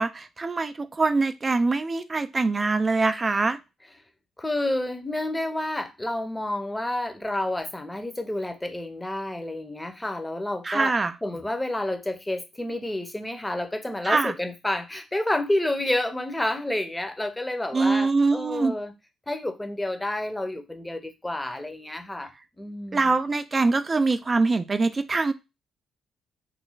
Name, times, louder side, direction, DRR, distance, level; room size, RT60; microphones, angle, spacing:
voice 1, 0.0-3.6 10.6-11.1 14.1-14.3 17.7-18.7 22.9-25.3, right 3 dB, 30° right, 10 dB, 0.3 m, -23 dB
voice 2, 4.4-10.9 11.2-18.9 19.3-22.3 22.6-23.1, left 1 dB, 10° left, 7 dB, 0.7 m, -29 dB
3.1 x 2.1 x 3.8 m, 0.24 s
cardioid pair, 90°, 0 cm